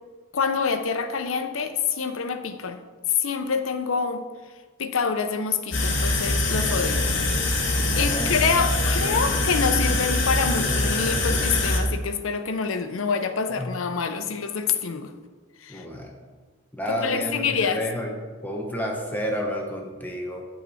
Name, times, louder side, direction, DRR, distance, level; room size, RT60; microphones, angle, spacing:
voice 1, 0.3-2.8 3.1-4.2 4.8-7.0 8.0-15.1 15.6-15.8 16.9-17.8, left 5 dB, 80° left, 8 dB, 0.7 m, -26 dB
sound 1, 5.7-11.8, left 2 dB, 65° left, 1.4 m, -23 dB
voice 2, 8.0-8.4 13.6-13.7 15.7-16.2 16.8-18.1 18.4-20.4, equal, 10° left, 0 dB, 0.9 m, -30 dB
9.0 x 5.7 x 4.2 m, 1.4 s
head